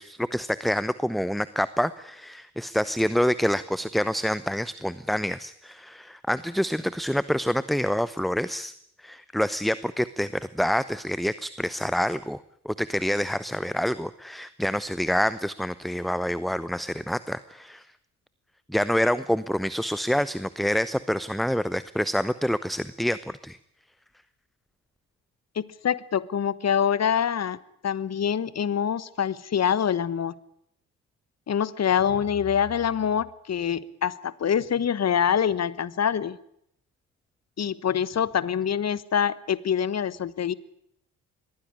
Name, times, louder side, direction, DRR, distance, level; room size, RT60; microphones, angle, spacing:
voice 1, 0.0-12.4 12.6-17.9 18.7-23.6, equal, ahead, 17 dB, 0.8 m, -27 dB
voice 2, 25.5-27.6 27.8-30.4 31.5-36.4 37.6-40.5, left 8 dB, 40° left, 19 dB, 1.2 m, -25 dB
22.0 x 15.5 x 9.9 m, 0.73 s
hypercardioid pair, 45°, 42 cm